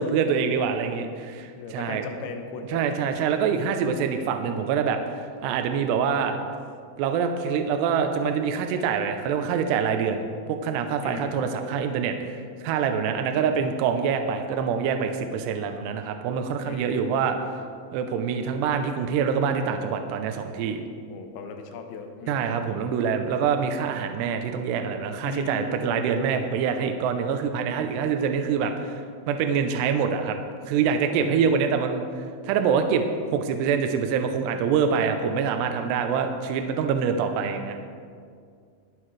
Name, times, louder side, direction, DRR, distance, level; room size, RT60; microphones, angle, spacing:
voice 1, 0.0-2.1 2.7-6.4 7.0-17.4 17.9-20.8 22.3-29.0 29.3-30.4 30.7-32.0 32.4-37.8, right 6 dB, 80° right, 6 dB, 2.5 m, -25 dB
voice 2, 1.5-3.3 11.0-11.5 12.9-13.3 16.6-17.3 21.1-22.6 25.2-26.4 31.1-31.7 37.8-37.9, left 3 dB, 75° left, 5 dB, 2.6 m, -37 dB
22.5 x 7.8 x 3.2 m, 2.2 s
omnidirectional pair, 5.5 m